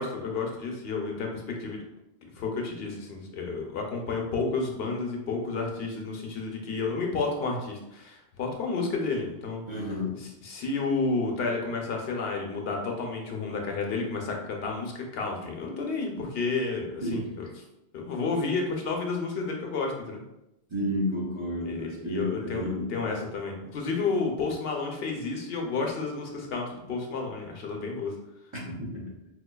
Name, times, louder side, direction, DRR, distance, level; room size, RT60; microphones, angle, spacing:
voice 1, 0.0-1.8 2.4-9.6 10.4-17.5 17.9-20.2 21.6-28.1, left 4 dB, 70° left, 1 dB, 0.8 m, -31 dB
voice 2, 9.7-10.3 17.0-17.4 20.7-22.9 28.5-29.2, left 1 dB, 30° right, -6 dB, 0.7 m, -31 dB
4.3 x 2.3 x 2.2 m, 0.90 s
omnidirectional pair, 1.1 m